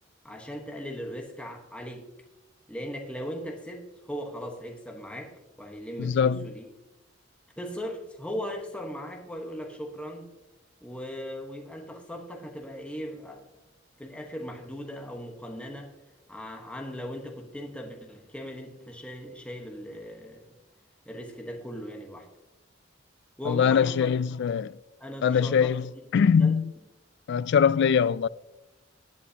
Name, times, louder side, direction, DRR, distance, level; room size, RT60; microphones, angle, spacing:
voice 1, 0.2-2.1 2.7-6.7 7.6-10.3 10.8-13.5 14.0-15.9 16.3-20.4 21.1-22.3 23.4-24.1 25.0-26.6, equal, 5° left, 1.2 m, -38 dB
voice 2, 6.0-6.4 23.5-24.7 25.2-25.9 26.1-26.7 27.3-28.3, left 7 dB, 65° left, 0.3 m, -22 dB
17.5 x 8.5 x 2.8 m
head